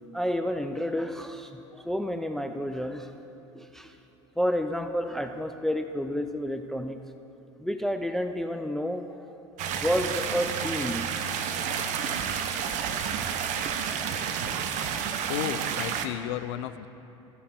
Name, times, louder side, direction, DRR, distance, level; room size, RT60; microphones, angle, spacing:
voice 1, 0.1-3.1 3.5-4.0 4.4-7.0 7.6-9.3 9.7-11.1, equal, ahead, 8 dB, 0.4 m, -30 dB
sound 1, 9.6-16.1, right 7 dB, 50° right, 0.7 m, -30 dB
voice 2, 15.3-16.9, left 13 dB, 70° left, 14 dB, 0.4 m, -33 dB
15.0 x 5.6 x 4.4 m, 3.0 s
hypercardioid pair, 85°, 16 cm